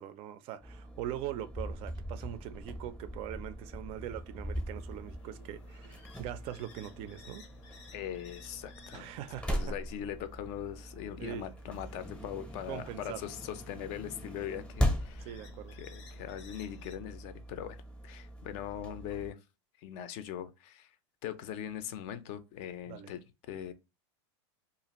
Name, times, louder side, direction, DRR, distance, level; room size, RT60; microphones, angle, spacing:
voice 1, 0.0-7.4 8.9-9.7 11.2-11.5 12.7-13.2 15.2-15.8 22.9-23.1, right 12 dB, 40° right, 0.4 m, -42 dB
sound 1, 0.6-19.3, equal, 5° left, 0.6 m, -40 dB
sound 2, 3.7-17.0, left 5 dB, 85° left, 0.7 m, -58 dB
voice 2, 7.9-9.1 9.5-15.3 15.8-17.8 18.0-19.4 19.8-20.9 21.2-23.7, left 10 dB, 50° left, 0.4 m, -41 dB
2.4 x 2.4 x 2.9 m
supercardioid pair, 135°, 15 cm